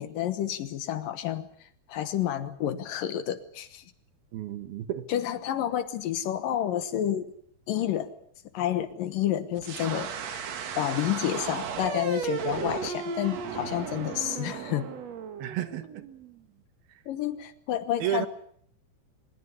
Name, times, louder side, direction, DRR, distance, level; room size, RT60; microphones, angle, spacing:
voice 1, 0.0-3.8 5.1-7.3 7.7-8.1 8.5-10.4 10.8-14.9 17.1-18.3, left 11 dB, 70° left, 12 dB, 2.6 m, -30 dB
voice 2, 4.3-5.1 15.4-16.1 16.9-17.0 18.0-18.3, right 11 dB, 75° right, 12 dB, 3.2 m, -32 dB
sound 1, 9.6-16.4, right 6 dB, 50° right, 2.4 m, -35 dB
23.0 x 21.0 x 8.3 m, 0.63 s
omnidirectional pair, 4.5 m